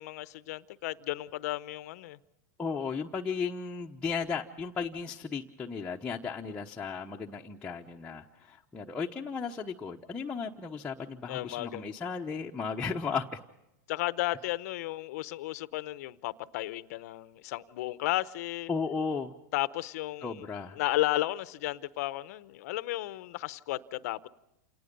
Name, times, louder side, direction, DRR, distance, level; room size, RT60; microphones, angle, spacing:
voice 1, 0.0-2.2 11.3-11.9 13.9-18.7 19.5-20.4 20.8-24.3, left 17 dB, 65° left, 0.8 m, -33 dB
voice 2, 2.6-13.4 18.7-19.3 20.2-20.8, left 5 dB, 10° left, 1.0 m, -35 dB
28.5 x 18.5 x 5.4 m
hypercardioid pair, 130°, 9 cm